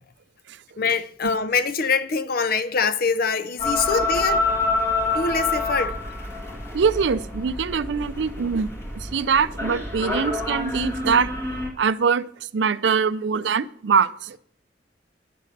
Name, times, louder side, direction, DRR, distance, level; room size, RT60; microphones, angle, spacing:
voice 1, 0.8-4.5 5.0-5.9, left 5 dB, 55° left, 0.6 m, -24 dB
sound 1, 3.6-11.7, left 2 dB, 15° left, 1.8 m, -27 dB
voice 2, 6.7-11.3 11.8-14.4, right 6 dB, 70° right, 0.4 m, -23 dB
10.0 x 6.5 x 6.6 m
head